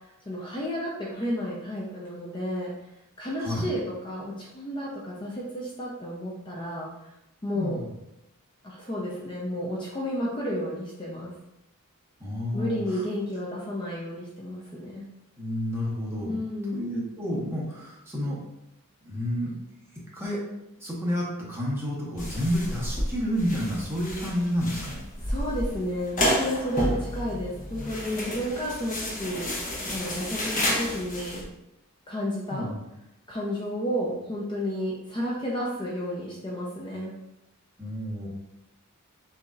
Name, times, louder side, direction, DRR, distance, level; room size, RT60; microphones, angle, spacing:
voice 1, 0.3-2.7 3.2-6.9 7.4-7.8 8.6-11.3 12.5-15.1 16.2-16.8 25.2-31.5 32.1-32.7 33.3-37.1, equal, 20° left, -4 dB, 0.6 m, -32 dB
voice 2, 12.2-12.8 15.4-16.4 16.7-18.4 19.0-19.5 20.1-20.4 20.8-25.0 32.5-32.8 37.8-38.3, equal, 10° right, -6 dB, 1.2 m, -30 dB
sound 1, 22.2-31.4, left 1 dB, 35° left, 1.0 m, -31 dB
6.8 x 2.8 x 2.4 m, 0.88 s
head